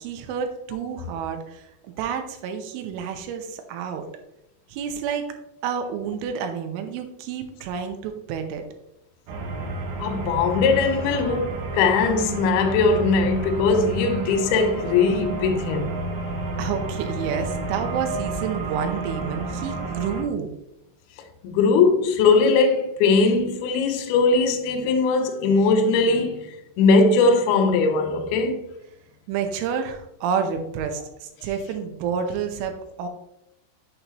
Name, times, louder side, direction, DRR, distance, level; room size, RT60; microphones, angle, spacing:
voice 1, 0.0-1.7 2.0-4.1 4.7-5.3 5.6-8.6 16.6-20.5 29.3-33.1, right 7 dB, 90° right, 3.3 m, -29 dB
sound 1, 9.3-20.2, right 3 dB, 70° right, 2.4 m, -31 dB
voice 2, 10.0-15.9 21.4-28.6, left 4 dB, 85° left, 2.3 m, -20 dB
8.3 x 6.8 x 2.9 m
omnidirectional pair, 5.4 m